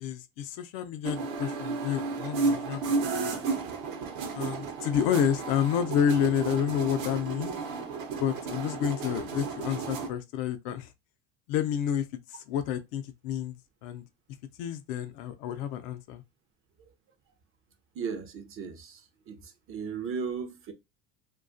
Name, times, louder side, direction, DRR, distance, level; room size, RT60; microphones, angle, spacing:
voice 1, 0.0-2.8 3.2-3.4 4.3-7.5 8.2-10.9 11.5-14.1 14.6-16.2, left 9 dB, 65° left, 0.5 m, -29 dB
sound 1, 1.0-10.1, right 4 dB, 65° right, 0.7 m, -33 dB
voice 2, 17.9-20.7, right 6 dB, 35° right, 0.5 m, -36 dB
2.3 x 2.3 x 2.5 m
supercardioid pair, 105°, 38 cm